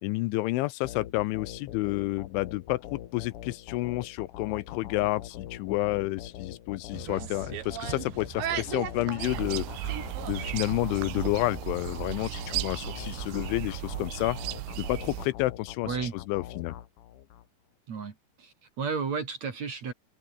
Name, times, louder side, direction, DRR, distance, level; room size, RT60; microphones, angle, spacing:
voice 1, 0.0-14.4 14.8-16.0 16.3-16.8, left 19 dB, 85° left, 3.0 m, -30 dB
sound 1, 0.8-17.4, left 11 dB, 65° left, 2.2 m, -43 dB
sound 2, 6.9-11.3, right 10 dB, 65° right, 4.5 m, -38 dB
sound 3, 9.2-15.3, right 18 dB, 90° right, 3.6 m, -36 dB
voice 2, 15.9-16.2 17.9-19.9, right 5 dB, 45° right, 3.1 m, -33 dB
open air
omnidirectional pair, 5.6 m